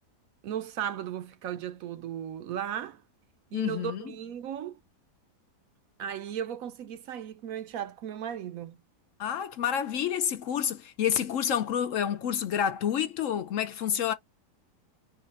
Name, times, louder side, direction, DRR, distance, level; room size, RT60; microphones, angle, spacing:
voice 1, 0.4-3.0 3.5-4.8 6.0-8.8, right 9 dB, 65° right, 1.0 m, -36 dB
voice 2, 3.5-4.0 9.2-14.1, left 9 dB, 65° left, 0.8 m, -29 dB
4.8 x 2.4 x 4.2 m
omnidirectional pair, 1.8 m